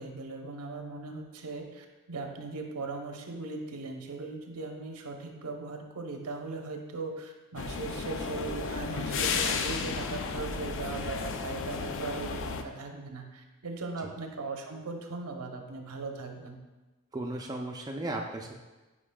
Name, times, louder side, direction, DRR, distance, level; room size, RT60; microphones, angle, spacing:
voice 1, 0.0-16.6, right 3 dB, 85° right, 3 dB, 0.8 m, -39 dB
sound 1, 7.6-12.6, left 5 dB, 60° left, 0.4 m, -33 dB
voice 2, 17.1-18.5, right 2 dB, 15° right, 1 dB, 0.3 m, -35 dB
8.5 x 5.0 x 2.2 m, 1.2 s
head